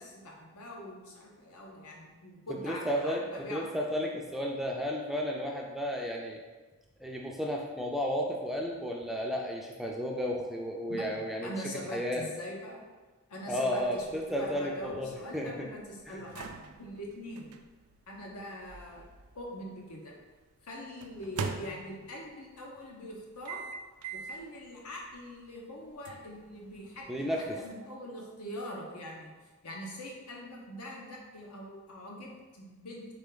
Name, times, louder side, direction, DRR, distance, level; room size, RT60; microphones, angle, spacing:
voice 1, 0.0-3.6 10.9-11.1 11.4-12.8 13.3-16.5 16.7-17.6 18.1-19.1 19.3-20.1 20.6-23.6 24.1-27.3 27.6-29.3 29.6-33.1, left 1 dB, 90° left, -1 dB, 1.0 m, -43 dB
voice 2, 2.5-6.4 7.0-11.5 11.9-12.3 13.5-15.7 16.1-16.2 27.1-27.6, equal, ahead, -1 dB, 0.3 m, -33 dB
sound 1, 13.8-19.9 21.0-22.3 23.5-24.5 25.0-25.1 26.1-27.7, right 4 dB, 85° right, 0.4 m, -43 dB
4.2 x 3.2 x 3.8 m, 1.3 s
head